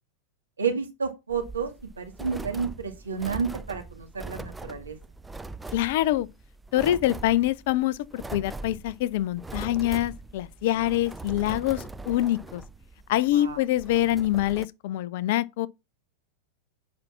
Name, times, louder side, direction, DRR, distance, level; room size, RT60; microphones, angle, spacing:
voice 1, 0.6-1.7 2.0-5.0 13.3-13.6, right 5 dB, 75° right, 2.2 m, -30 dB
sound 1, 1.3-14.6, right 2 dB, 5° right, 0.5 m, -41 dB
voice 2, 5.7-6.3 6.7-12.6 13.1-15.7, left 14 dB, 50° left, 0.6 m, -25 dB
7.7 x 5.6 x 6.0 m
figure-of-eight pair, 90°, 0 cm